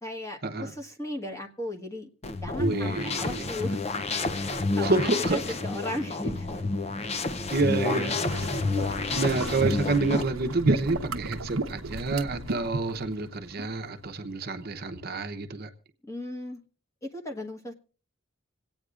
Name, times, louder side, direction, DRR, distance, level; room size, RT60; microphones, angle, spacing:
voice 1, 0.0-2.1 2.4-3.8 4.3-6.6 8.3-8.5 16.0-16.6 17.0-17.7, left 1 dB, 15° left, 2 dB, 1.3 m, -36 dB
sound 1, 2.2-10.2, left 3 dB, 30° left, 0.5 m, -30 dB
voice 2, 2.6-3.4 4.8-5.6 7.5-8.2 9.1-15.7, right 3 dB, 45° right, 7 dB, 0.8 m, -28 dB
sound 2, 8.3-13.8 14.4-14.5 14.9-15.0, right 2 dB, 75° right, 0.8 m, -33 dB
26.5 x 8.8 x 2.4 m, 0.37 s
head